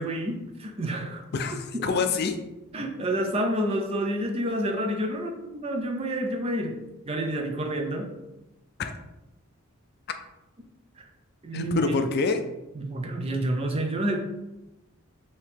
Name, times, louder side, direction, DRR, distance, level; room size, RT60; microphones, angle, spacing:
voice 1, 0.0-1.2 1.7-1.8 2.7-8.1 11.0-11.1 11.4-11.8 12.7-14.2, right 1 dB, 25° right, 4 dB, 0.5 m, -29 dB
voice 2, 1.3-2.4 8.8-8.9 11.5-12.4, left 4 dB, 45° left, 7 dB, 0.4 m, -26 dB
4.6 x 2.8 x 3.5 m, 0.96 s
head